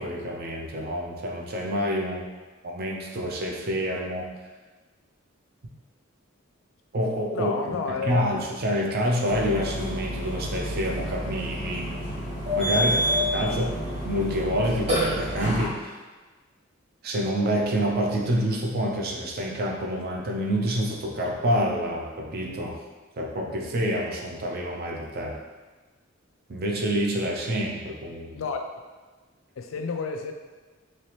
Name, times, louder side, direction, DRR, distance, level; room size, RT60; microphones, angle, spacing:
voice 1, 0.0-2.3 2.6-4.3 6.9-11.9 12.5-16.0 17.0-22.8 23.2-25.4 26.5-28.4, equal, 50° right, 0 dB, 0.5 m, -27 dB
voice 2, 7.3-8.3 28.3-28.6 29.6-30.3, left 5 dB, 75° left, 5 dB, 0.4 m, -30 dB
Burping eructation, 9.3-15.6, equal, 30° right, 1.2 m, -28 dB
3.2 x 2.9 x 3.0 m, 1.3 s
head